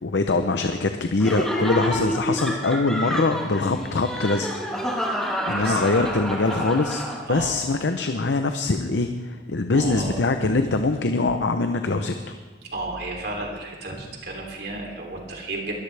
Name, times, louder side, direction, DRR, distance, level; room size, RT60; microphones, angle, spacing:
voice 1, 0.0-4.5 5.5-7.0 7.3-12.4, left 3 dB, 90° left, 7 dB, 0.7 m, -23 dB
Laughter, 1.2-7.5, equal, 5° left, 1.7 m, -28 dB
voice 2, 5.5-6.1 7.3-7.5 9.7-10.2 12.7-15.7, right 2 dB, 60° right, 0 dB, 3.2 m, -33 dB
22.5 x 13.5 x 3.4 m, 1.4 s
head